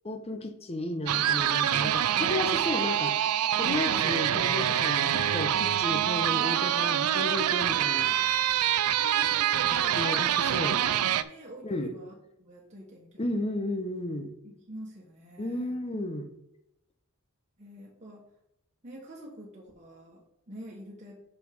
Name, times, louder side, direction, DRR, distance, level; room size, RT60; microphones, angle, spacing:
voice 1, 0.0-3.2 3.6-8.1 10.0-10.8 11.6-11.9 13.2-14.3 15.4-16.3, left 1 dB, 25° left, 8 dB, 0.8 m, -33 dB
hot hot licks, 1.1-11.2, right 10 dB, 80° right, 0.4 m, -26 dB
voice 2, 9.0-13.3 14.4-15.8 17.6-18.2 18.8-21.2, equal, 30° right, -3 dB, 1.4 m, -46 dB
6.2 x 5.4 x 5.3 m, 0.81 s
head